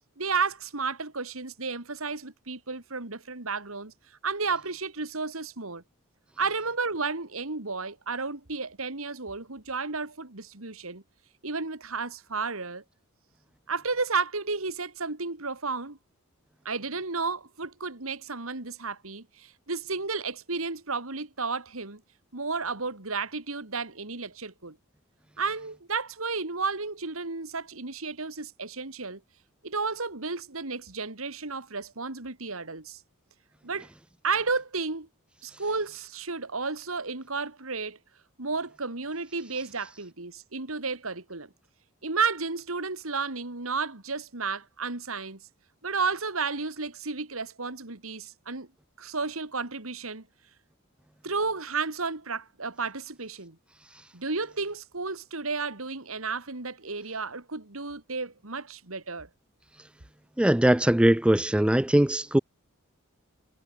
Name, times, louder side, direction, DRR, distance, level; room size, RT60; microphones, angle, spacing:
voice 1, 0.2-3.9 4.2-5.8 6.4-11.0 11.4-12.8 13.7-16.0 16.6-22.0 22.3-24.8 25.4-29.2 29.6-33.0 33.6-33.9 34.2-35.1 35.4-38.0 38.4-41.5 42.0-45.4 45.8-48.7 49.0-50.2 51.2-53.6 54.1-59.3, right 4 dB, 75° right, 2.7 m, -32 dB
voice 2, 60.4-62.4, right 1 dB, 5° right, 0.4 m, -21 dB
head